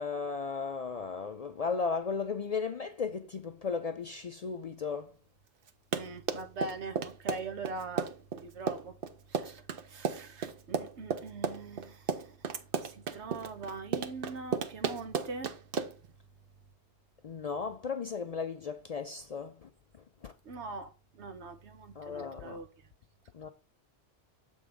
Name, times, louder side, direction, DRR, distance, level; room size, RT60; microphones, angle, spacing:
voice 1, 0.0-5.1 17.2-19.7 20.2-20.3 22.0-22.6 23.3-23.5, left 5 dB, 55° left, 0.4 m, -35 dB
Run, 5.7-16.1, right 6 dB, 60° right, 0.8 m, -34 dB
voice 2, 5.9-8.9 9.3-12.3 12.8-15.5 20.4-22.7, right 3 dB, 90° right, 1.3 m, -42 dB
7.2 x 3.5 x 5.0 m
omnidirectional pair, 1.1 m